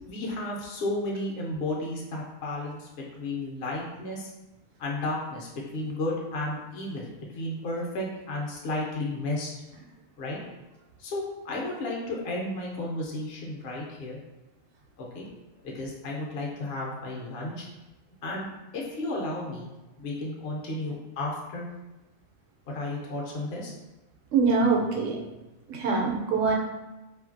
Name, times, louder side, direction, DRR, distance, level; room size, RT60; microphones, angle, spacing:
voice 1, 0.0-4.3 4.8-7.1 7.3-9.5 10.2-10.5 11.0-14.2 15.0-15.2 15.6-17.7 18.2-18.5 18.7-19.7 20.0-21.7 22.7-23.7, left 2 dB, 60° left, -2 dB, 0.7 m, -33 dB
voice 2, 24.3-25.2 25.7-26.5, right 4 dB, 70° right, -1 dB, 0.9 m, -24 dB
2.7 x 2.5 x 2.5 m, 1.0 s
omnidirectional pair, 1.4 m